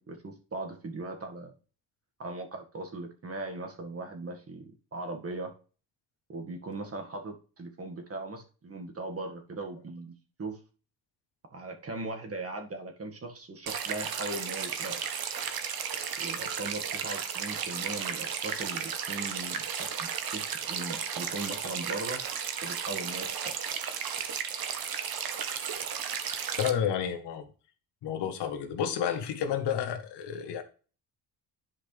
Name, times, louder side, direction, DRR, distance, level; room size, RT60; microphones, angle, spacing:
voice 1, 0.0-1.5 2.2-5.5 6.3-10.1 10.4-10.6 11.5-15.0 16.2-22.2 22.6-23.5, right 2 dB, 35° right, 3 dB, 1.9 m, -39 dB
sound 1, 13.7-26.7, right 7 dB, 60° right, 1.2 m, -34 dB
voice 2, 26.6-27.5 28.0-30.6, left 8 dB, 90° left, 7 dB, 1.4 m, -30 dB
10.5 x 5.1 x 3.4 m, 0.37 s
cardioid pair, 105°, 40 cm